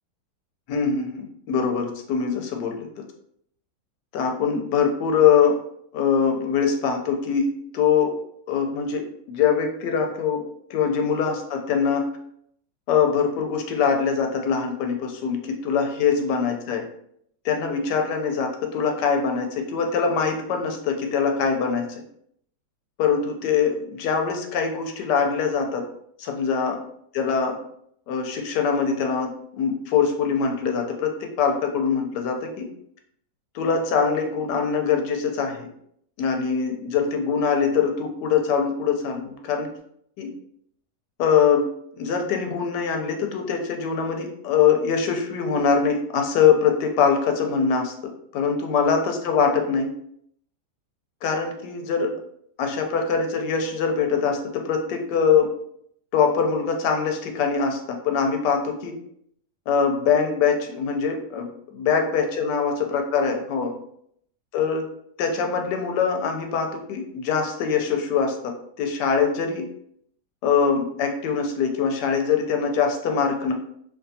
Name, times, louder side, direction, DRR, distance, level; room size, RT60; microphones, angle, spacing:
voice 1, 0.7-2.9 4.1-5.6 5.9-7.5 7.7-8.2 8.5-10.4 10.7-12.1 12.9-16.9 17.4-22.0 23.0-25.8 26.2-26.8 27.1-27.6 28.1-32.7 33.5-35.7 36.2-39.7 40.2-40.3 41.2-41.7 42.0-47.9 48.3-49.9 51.2-52.1 52.6-55.5 56.1-59.0 59.7-63.8 64.5-64.9 65.2-69.7 70.4-73.5, left 6 dB, 85° left, 4 dB, 1.2 m, -23 dB
3.4 x 2.7 x 2.7 m, 0.69 s
omnidirectional pair, 1.8 m